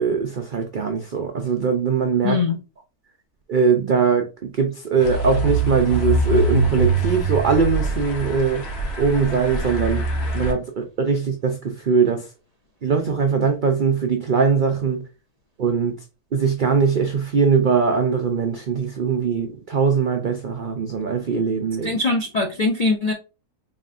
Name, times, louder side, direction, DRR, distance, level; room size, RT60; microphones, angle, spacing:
voice 1, 0.0-2.4 3.5-8.6 9.0-12.3 12.8-15.0 15.6-15.9 16.3-22.0, right 5 dB, 70° right, 0.4 m, -21 dB
voice 2, 2.2-2.6 21.8-23.1, left 3 dB, 60° left, 0.4 m, -21 dB
sound 1, 5.0-10.5, right 2 dB, 90° left, 1.5 m, -23 dB
4.2 x 3.0 x 2.5 m
omnidirectional pair, 1.6 m